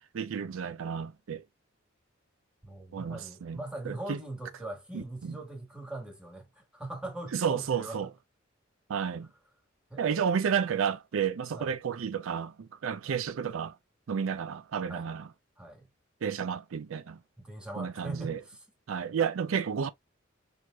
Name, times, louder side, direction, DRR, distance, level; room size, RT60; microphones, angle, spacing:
voice 1, 0.1-1.4 2.9-4.2 4.9-5.4 7.3-8.1 8.9-9.3 10.0-13.8 14.1-15.3 16.2-17.2 17.8-18.4 18.9-19.9, right 7 dB, 75° right, 0.4 m, -31 dB
voice 2, 2.6-8.0 9.9-10.2 11.5-11.7 14.9-15.1 15.6-15.9 17.4-18.4, right 2 dB, 5° right, 1.4 m, -41 dB
4.7 x 2.8 x 2.3 m
head